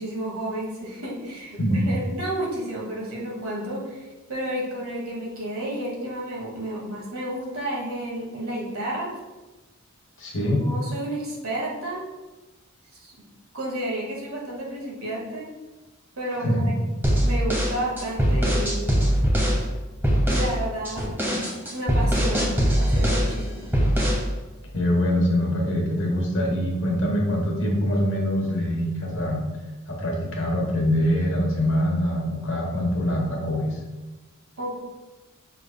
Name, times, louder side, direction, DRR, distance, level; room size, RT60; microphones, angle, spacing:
voice 1, 0.0-4.0 4.3-9.1 10.4-12.0 12.9-13.1 13.5-15.5 16.2-16.8 17.2-18.9 20.2-21.1 21.7-23.7 34.6-34.7, right 1 dB, 75° right, -3 dB, 1.4 m, -31 dB
voice 2, 10.2-10.6 16.4-16.6 24.7-29.4 29.9-33.8, equal, 60° left, -1 dB, 1.1 m, -24 dB
sound 1, 17.0-19.6 20.0-20.5 20.9-23.3 23.7-24.3, equal, 10° right, 0.9 m, -21 dB
6.2 x 3.5 x 2.2 m, 1.2 s
head